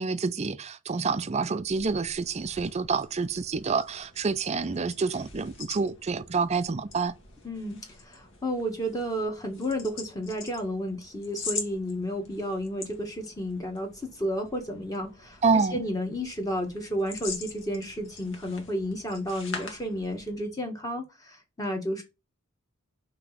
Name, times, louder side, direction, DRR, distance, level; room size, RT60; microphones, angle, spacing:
voice 1, 0.0-7.2 15.4-15.8, right 4 dB, 30° right, 0.4 m, -28 dB
sound 1, 1.6-20.5, left 4 dB, 60° left, 1.6 m, -44 dB
voice 2, 7.4-15.4 15.7-22.0, equal, 15° left, 1.5 m, -32 dB
6.0 x 3.0 x 5.7 m
head